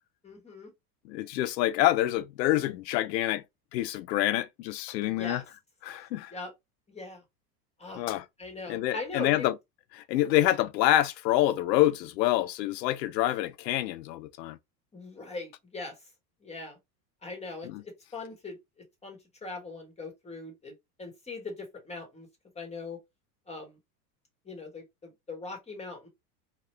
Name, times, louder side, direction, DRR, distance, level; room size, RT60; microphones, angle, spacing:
voice 1, 0.2-0.7 5.0-5.4 6.3-6.5 6.9-7.2 7.8-8.0 8.4-9.5 14.9-16.1 16.4-16.8 17.2-18.6 19.0-20.7 21.0-22.3 22.5-23.0 23.5-23.8 24.4-26.1, left 3 dB, 15° left, 1.2 m, -40 dB
voice 2, 1.0-3.4 3.7-5.4 5.8-6.3 8.0-8.2 8.7-9.5 9.9-14.6 17.6-17.8, left 14 dB, 85° left, 0.6 m, -27 dB
2.9 x 2.3 x 3.2 m
supercardioid pair, 115°, 49 cm